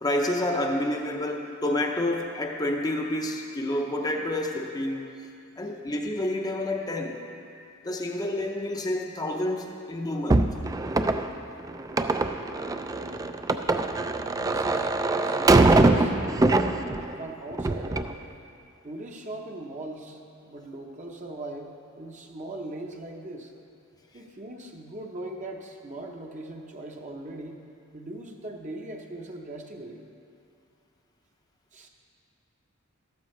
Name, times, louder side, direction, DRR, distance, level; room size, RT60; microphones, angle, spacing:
voice 1, 0.0-5.1 5.6-7.2 7.8-10.5, left 1 dB, 20° left, 1 dB, 0.6 m, -29 dB
sound 1, 10.3-17.1 17.5-18.1, right 2 dB, 15° right, 0.3 m, -23 dB
voice 2, 12.7-13.3 14.1-16.8 17.2-18.2 18.8-23.5 24.1-27.6 27.9-30.0 31.7-31.9, right 1 dB, 35° right, 1 dB, 0.9 m, -40 dB
14.0 x 13.0 x 3.2 m, 2.5 s
head